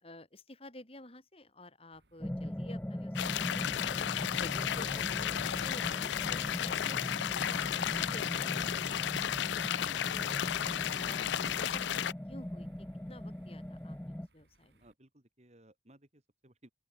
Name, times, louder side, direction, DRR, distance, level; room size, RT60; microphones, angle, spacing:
voice 1, 0.0-4.0 4.3-7.0 7.4-7.6 7.9-9.2 9.7-11.2 11.6-14.8, left 1 dB, 30° left, 4.4 m, -52 dB
sound 1, 1.9-14.9, right 1 dB, 65° right, 3.1 m, -67 dB
sound 2, 2.2-14.3, left 1 dB, 10° left, 0.5 m, -40 dB
sound 3, 3.2-12.1, left 10 dB, 70° left, 0.4 m, -33 dB
voice 2, 14.8-16.7, right 1 dB, 35° right, 2.6 m, -61 dB
open air
head